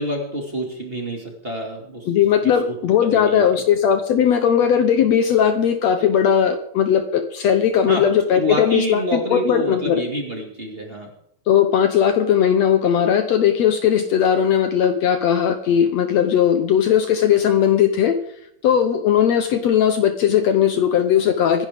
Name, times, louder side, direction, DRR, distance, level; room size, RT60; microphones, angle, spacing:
voice 1, 0.0-2.1 2.4-2.8 3.0-3.4 7.9-8.1 8.3-11.1, equal, 20° right, 0 dB, 1.8 m, -27 dB
voice 2, 2.1-10.0 11.5-18.2 18.6-21.7, left 8 dB, 75° left, 7 dB, 1.6 m, -18 dB
25.5 x 10.5 x 3.6 m, 0.70 s
omnidirectional pair, 4.2 m